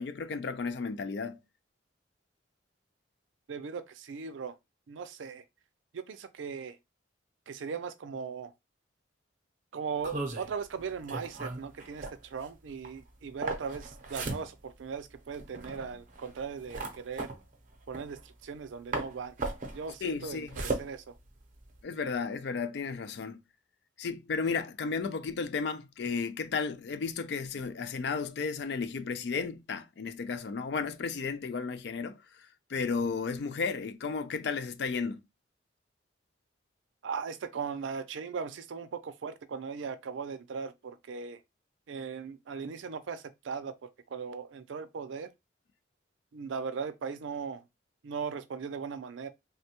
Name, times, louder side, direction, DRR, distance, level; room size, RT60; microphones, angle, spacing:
voice 1, 0.0-1.4 20.0-20.5 21.8-23.4 24.0-35.2, left 5 dB, 60° left, 0.4 m, -33 dB
voice 2, 3.5-4.6 4.9-5.4 5.9-6.8 7.5-8.5 9.7-17.3 17.9-19.4 19.7-21.2 37.0-41.4 41.9-45.3 46.3-47.7 48.0-49.3, right 5 dB, 85° right, 0.4 m, -38 dB
sound 1, 10.0-18.6 18.9-21.8, right 2 dB, 45° right, 0.6 m, -38 dB
3.4 x 2.2 x 2.8 m
head